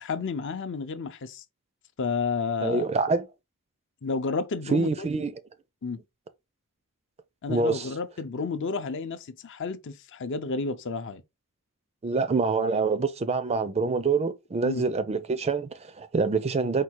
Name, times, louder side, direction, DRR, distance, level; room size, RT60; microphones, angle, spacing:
voice 1, 0.0-1.4 2.0-2.9 4.0-5.1 5.8-6.0 7.4-11.2 14.6-14.8, left 4 dB, 55° left, 0.5 m, -31 dB
voice 2, 2.6-3.2 4.7-5.3 7.5-7.9 12.0-16.8, right 4 dB, 30° right, 0.4 m, -26 dB
4.7 x 2.3 x 4.4 m
head